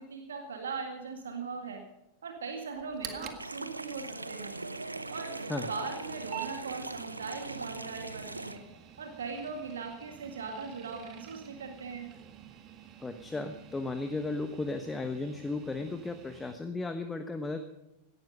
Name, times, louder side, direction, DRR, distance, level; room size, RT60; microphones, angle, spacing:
voice 1, 0.0-1.8 2.2-4.6 5.1-8.6 9.0-12.1, right 4 dB, 65° right, 4 dB, 2.0 m, -40 dB
sound 1, 2.7-16.5, right 10 dB, 35° right, 1.7 m, -49 dB
sound 2, 3.4-8.6, right 2 dB, 85° right, 0.8 m, -40 dB
voice 2, 13.0-17.6, left 3 dB, 10° left, 7 dB, 1.2 m, -35 dB
17.5 x 12.5 x 5.2 m, 0.89 s
figure-of-eight pair, 90°, 0 cm